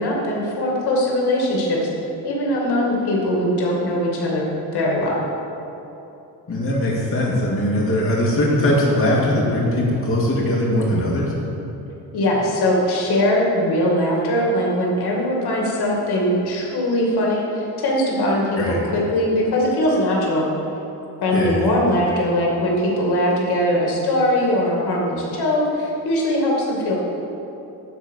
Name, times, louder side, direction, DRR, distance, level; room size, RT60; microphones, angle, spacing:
voice 1, 0.0-1.9 2.2-5.2 12.1-20.5 21.2-26.9, left 1 dB, 75° left, -3 dB, 2.3 m, -21 dB
voice 2, 6.5-11.3 18.6-18.8 21.3-21.7, left 1 dB, 35° left, -4 dB, 2.1 m, -20 dB
12.0 x 4.6 x 8.1 m, 2.9 s
cardioid pair, 120°, 39 cm